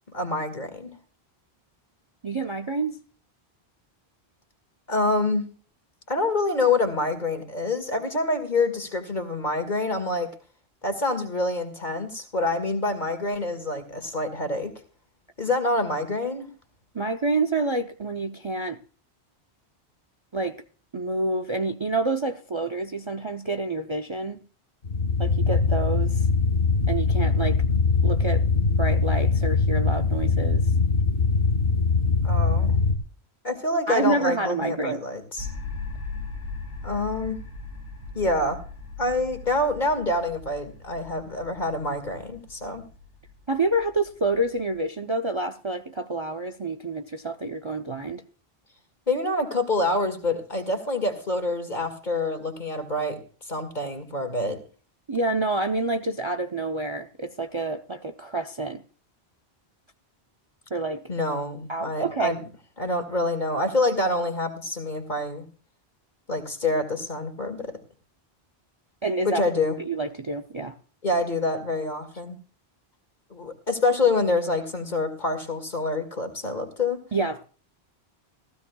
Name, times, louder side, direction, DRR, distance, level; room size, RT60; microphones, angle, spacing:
voice 1, 0.1-1.0 4.9-5.5 6.1-10.3 10.8-14.7 15.4-16.5 32.2-32.7 33.4-35.5 36.8-37.4 38.1-38.6 39.0-42.9 49.1-53.2 53.5-54.6 61.1-62.4 62.8-65.5 66.3-67.8 69.2-69.8 71.0-72.4 73.3-77.0, left 2 dB, 45° left, 7 dB, 2.3 m, -26 dB
voice 2, 2.2-3.0 16.9-18.8 20.3-20.6 20.9-24.4 25.2-26.3 26.9-27.6 28.0-28.4 28.8-30.6 33.9-35.0 43.5-48.2 55.1-58.8 60.7-61.0 61.7-62.4 69.0-69.5 69.8-70.8 77.1-77.4, right 2 dB, 30° right, 8 dB, 0.6 m, -28 dB
sound 1, 24.8-33.0, left 4 dB, 70° left, 1.6 m, -22 dB
sound 2, 35.4-44.7, left 3 dB, 65° right, 3.8 m, -39 dB
16.0 x 15.5 x 2.3 m, 0.40 s
omnidirectional pair, 1.1 m